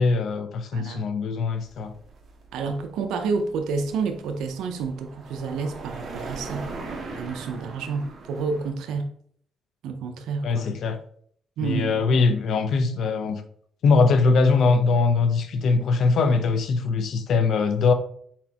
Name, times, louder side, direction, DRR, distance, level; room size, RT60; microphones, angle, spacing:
voice 1, 0.0-1.9 10.4-11.0 11.6-13.4 13.8-17.9, left 4 dB, 65° left, 0.6 m, -21 dB
voice 2, 0.7-1.0 2.5-6.7 7.1-9.1 9.8-10.7 11.6-12.2, right 4 dB, 85° right, 0.5 m, -29 dB
sound 1, 1.6-8.7, right 3 dB, 50° right, 1.1 m, -40 dB
4.3 x 4.2 x 2.8 m
cardioid pair, 90°, 0 cm